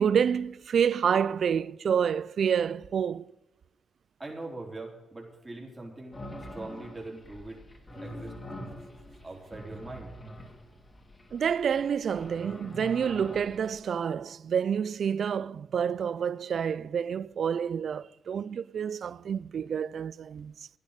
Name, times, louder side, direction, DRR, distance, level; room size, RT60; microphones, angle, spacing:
voice 1, 0.0-3.3 11.3-20.7, right 7 dB, 65° right, 0.3 m, -28 dB
voice 2, 4.2-7.6 8.0-8.4 9.2-10.1, right 2 dB, 25° right, 3.5 m, -42 dB
sound 1, 6.1-13.9, left 1 dB, 30° left, 2.5 m, -45 dB
11.0 x 10.5 x 6.5 m
supercardioid pair, 45°, 0 cm